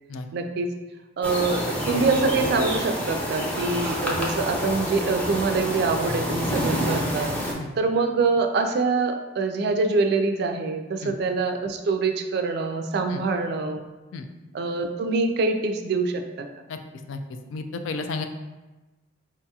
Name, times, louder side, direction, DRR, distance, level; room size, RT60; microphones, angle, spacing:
voice 1, 0.3-0.7 1.2-7.3 7.8-13.8 14.5-16.5, right 3 dB, 55° right, 6 dB, 0.3 m, -25 dB
sound 1, 1.2-7.5, equal, 10° left, 0.5 m, -28 dB
voice 2, 17.5-18.2, left 3 dB, 80° left, 7 dB, 0.3 m, -32 dB
4.7 x 2.8 x 2.3 m, 1.1 s
head